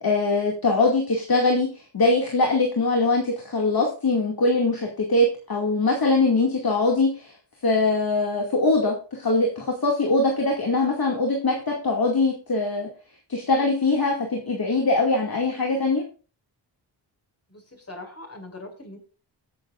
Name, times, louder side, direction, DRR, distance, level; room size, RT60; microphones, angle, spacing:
voice 1, 0.0-7.3 7.6-12.9 13.3-16.0, left 3 dB, 50° left, 0 dB, 2.5 m, -22 dB
voice 2, 17.5-19.0, left 2 dB, 30° left, 3 dB, 5.8 m, -41 dB
20.5 x 7.6 x 2.5 m, 0.36 s
cardioid pair, 60°, 46 cm